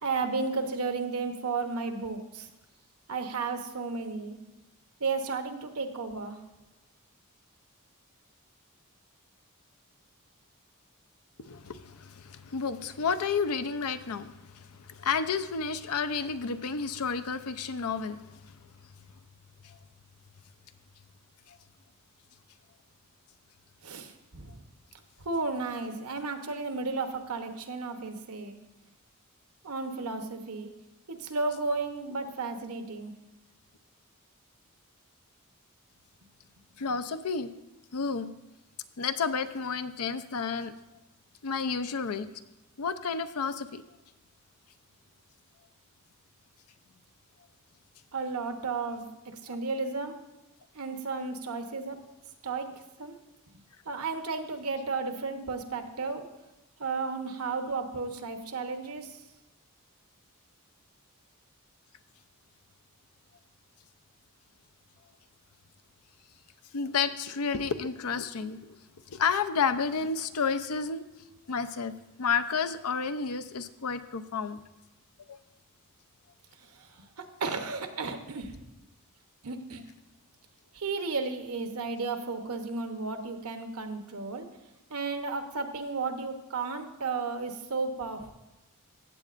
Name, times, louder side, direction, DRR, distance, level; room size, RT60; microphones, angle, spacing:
voice 1, 0.0-2.5 3.1-4.4 5.0-6.4 23.8-24.6 25.2-28.6 29.6-30.7 31.1-33.1 48.1-50.2 50.7-52.0 52.4-52.7 53.0-53.2 53.9-56.3 56.8-59.2 76.7-78.6 79.4-79.8 80.7-84.5 84.9-88.3, right 4 dB, 75° right, 6 dB, 1.0 m, -33 dB
voice 2, 11.4-18.6 19.6-19.8 21.5-21.6 36.8-37.5 37.9-38.3 39.0-40.7 41.4-42.3 42.8-43.8 66.7-68.8 69.1-71.0 71.5-74.6 75.3-75.4, left 5 dB, 80° left, 11 dB, 0.6 m, -31 dB
15.5 x 8.4 x 2.5 m, 0.98 s
head